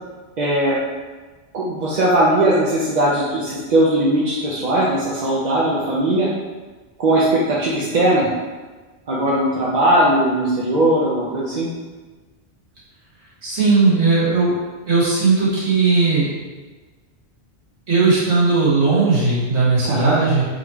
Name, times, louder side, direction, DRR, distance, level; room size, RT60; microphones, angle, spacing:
voice 1, 0.4-0.8 1.5-6.3 7.0-8.3 9.1-11.7 19.9-20.2, right 1 dB, 50° right, -6 dB, 0.6 m, -19 dB
voice 2, 13.4-14.5 14.9-16.3 17.9-20.5, right 3 dB, 85° right, -8 dB, 1.8 m, -17 dB
3.7 x 3.1 x 3.4 m, 1.3 s
omnidirectional pair, 1.1 m